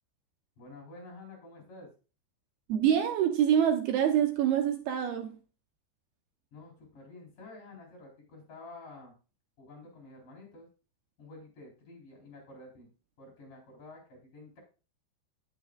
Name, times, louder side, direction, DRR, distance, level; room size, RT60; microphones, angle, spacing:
voice 1, 0.6-1.9 6.5-9.1 9.6-10.7 11.2-12.9 13.2-14.6, left 2 dB, 50° left, 0 dB, 5.8 m, -50 dB
voice 2, 2.7-5.4, right 9 dB, 75° right, 4 dB, 2.7 m, -26 dB
18.0 x 6.5 x 2.4 m, 0.34 s
omnidirectional pair, 5.0 m